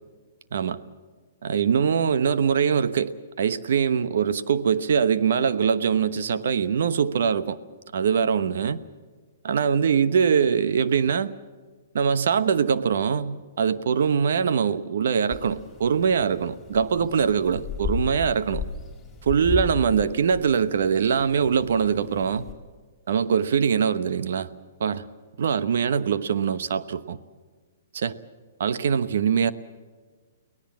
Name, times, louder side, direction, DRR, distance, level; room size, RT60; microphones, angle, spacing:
voice 1, 1.4-7.6 7.9-8.8 9.4-11.3 11.9-18.6 19.3-22.4 23.1-24.5 24.8-25.0 25.4-27.2 27.9-28.1 28.6-29.5, right 7 dB, 70° right, 13 dB, 1.0 m, -23 dB
sound 1, 15.3-22.5, left 6 dB, 10° left, 4.6 m, -36 dB
24.0 x 18.0 x 7.4 m, 1.4 s
hypercardioid pair, 130°, 0 cm